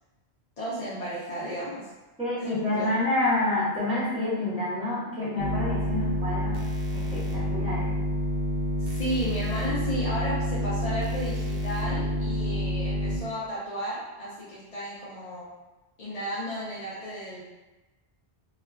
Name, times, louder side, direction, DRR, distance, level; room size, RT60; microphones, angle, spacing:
voice 1, 0.6-1.9 2.4-2.9 8.8-15.5 16.0-17.4, equal, 45° left, -9 dB, 0.5 m, -33 dB
voice 2, 2.2-6.6 6.9-8.0, left 2 dB, 5° right, -10 dB, 1.0 m, -28 dB
sound 1, 5.4-13.2, equal, 70° right, 0.8 m, -28 dB
2.3 x 2.3 x 3.2 m, 1.1 s
omnidirectional pair, 1.1 m